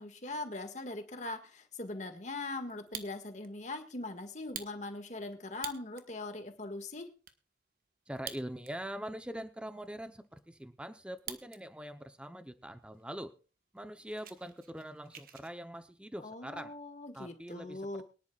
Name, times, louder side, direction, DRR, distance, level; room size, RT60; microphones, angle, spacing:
voice 1, 0.0-7.2 16.2-18.0, left 2 dB, 40° left, 6 dB, 1.8 m, -41 dB
Fire, 2.7-3.5 3.9-4.0 4.4-6.1 6.6-6.7 6.9-7.4 8.1-8.9 9.2-9.3 9.9-11.6 11.9-12.4 12.9-13.0 13.3-13.5 13.8-15.5, right 9 dB, 50° right, 1.2 m, -46 dB
voice 2, 8.1-13.3 13.7-16.7 17.1-18.0, equal, 5° right, 9 dB, 0.8 m, -43 dB
23.5 x 10.5 x 2.4 m, 0.34 s
head